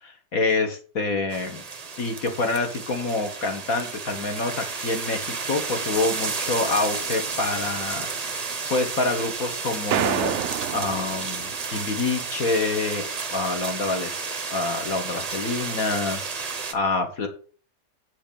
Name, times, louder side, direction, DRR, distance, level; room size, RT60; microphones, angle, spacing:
voice 1, 0.0-1.6 2.0-14.2 14.5-17.3, left 3 dB, 55° left, 5 dB, 1.7 m, -27 dB
sound 1, 1.3-16.7, right 5 dB, 35° right, 0.6 m, -32 dB
sound 2, 9.9-11.9, right 11 dB, 80° right, 0.6 m, -28 dB
7.6 x 5.1 x 6.8 m, 0.40 s
omnidirectional pair, 1.8 m